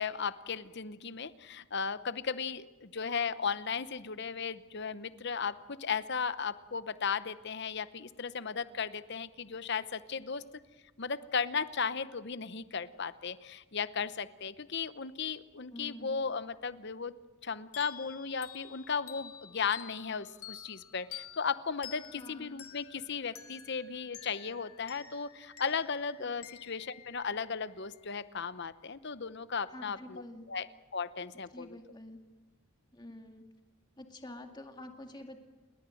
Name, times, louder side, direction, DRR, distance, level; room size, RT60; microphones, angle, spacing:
voice 1, 0.0-10.4 11.0-30.2 30.5-30.7 30.9-31.8, left 6 dB, 50° left, 14 dB, 0.8 m, -36 dB
voice 2, 15.7-16.2 22.1-22.6 26.2-26.4 29.7-30.5 31.5-32.2 32.9-33.5 34.0-35.4, left 1 dB, 20° left, 4 dB, 2.1 m, -47 dB
sound 1, 17.7-28.0, left 10 dB, 90° left, 2.1 m, -51 dB
28.5 x 22.0 x 7.8 m, 1.2 s
head